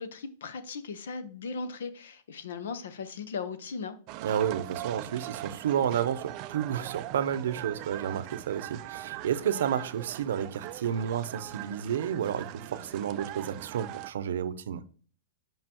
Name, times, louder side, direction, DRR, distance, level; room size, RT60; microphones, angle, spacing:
voice 1, 0.0-4.0, left 4 dB, 85° left, 0.9 m, -37 dB
sound 1, 4.1-14.1, right 15 dB, 30° right, 0.3 m, -41 dB
voice 2, 4.2-14.8, right 9 dB, 75° right, 0.6 m, -31 dB
7.5 x 5.2 x 2.9 m
supercardioid pair, 170°, 0 cm